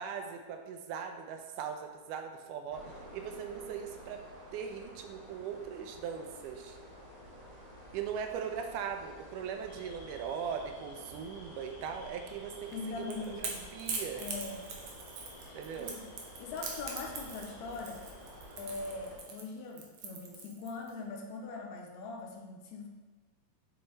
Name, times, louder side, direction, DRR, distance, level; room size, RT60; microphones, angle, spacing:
voice 1, 0.0-4.2 4.5-6.8 7.9-14.2 15.5-16.0, right 7 dB, 90° right, 5 dB, 2.2 m, -40 dB
sound 1, 2.7-19.2, equal, 15° right, 1.5 m, -51 dB
sound 2, 9.7-19.4, left 1 dB, 40° left, 2.0 m, -57 dB
voice 2, 12.7-13.7 14.2-14.7 15.4-16.0 16.4-18.0 18.6-22.9, left 4 dB, 75° left, 1 dB, 1.9 m, -42 dB
Crackle / Crack, 12.7-20.9, right 4 dB, 70° right, 1.4 m, -42 dB
6.8 x 4.2 x 4.0 m, 1.3 s
omnidirectional pair, 3.5 m